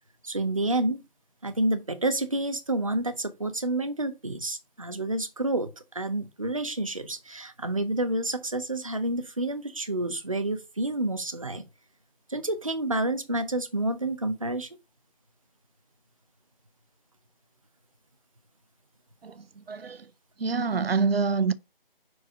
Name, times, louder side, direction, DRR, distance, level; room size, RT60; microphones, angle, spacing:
voice 1, 0.2-1.0 1.4-11.6 12.3-14.8, right 2 dB, 35° right, 0.6 m, -29 dB
voice 2, 19.2-20.1 20.4-21.5, right 4 dB, 80° right, 0.6 m, -26 dB
5.3 x 4.7 x 3.7 m
figure-of-eight pair, 165°, 30 cm